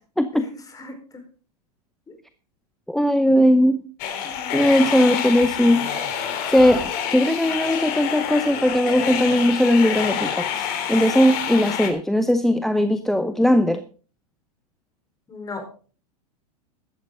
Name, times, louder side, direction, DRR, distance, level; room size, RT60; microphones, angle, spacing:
voice 1, 0.3-1.2 2.1-2.2 4.2-4.6 15.3-15.6, left 3 dB, 15° left, 4.7 m, -37 dB
voice 2, 2.9-3.8 4.5-5.9 6.5-13.8, equal, ahead, 0.7 m, -19 dB
sound 1, 4.0-11.9, left 8 dB, 50° left, 3.4 m, -27 dB
14.5 x 12.0 x 3.9 m
hypercardioid pair, 115°, 21 cm